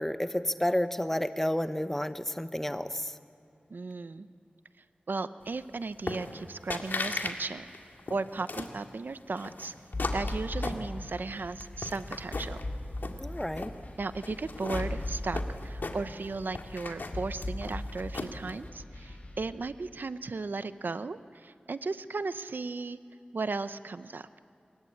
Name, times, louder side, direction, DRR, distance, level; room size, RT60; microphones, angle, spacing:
voice 1, 0.0-3.1 13.2-13.7, left 1 dB, 10° left, 10 dB, 1.1 m, -30 dB
voice 2, 3.7-4.3 5.1-7.6 8.1-9.7 10.1-12.6 14.0-23.0 23.3-24.3, right 3 dB, 75° right, 12 dB, 0.7 m, -36 dB
sound 1, 6.1-6.4 6.7-7.4 7.7-8.8 9.4-11.2 11.6-12.6 13.0-13.8 14.2-16.3 16.5-18.5, left 3 dB, 85° left, 2.0 m, -37 dB
sound 2, 9.9-19.5, left 1 dB, 45° left, 6.7 m, -37 dB
27.5 x 22.5 x 8.6 m, 2.5 s
wide cardioid pair, 75°, 3 cm